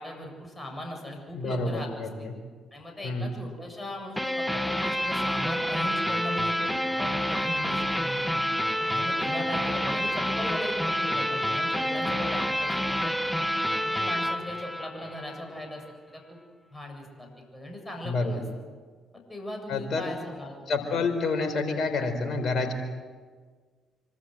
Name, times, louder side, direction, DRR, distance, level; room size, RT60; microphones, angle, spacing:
voice 1, 0.0-2.3 2.7-8.3 8.8-13.1 13.8-16.4 16.7-18.4 19.1-21.0, left 1 dB, 20° left, 2 dB, 7.5 m, -38 dB
voice 2, 1.3-2.3 3.0-3.4 18.0-18.4 19.7-20.1 20.7-22.7, left 3 dB, 50° left, 8 dB, 4.4 m, -28 dB
sound 1, 4.2-15.4, equal, 5° left, 1.6 m, -28 dB
26.0 x 25.0 x 8.0 m, 1.5 s
figure-of-eight pair, 45°, 0 cm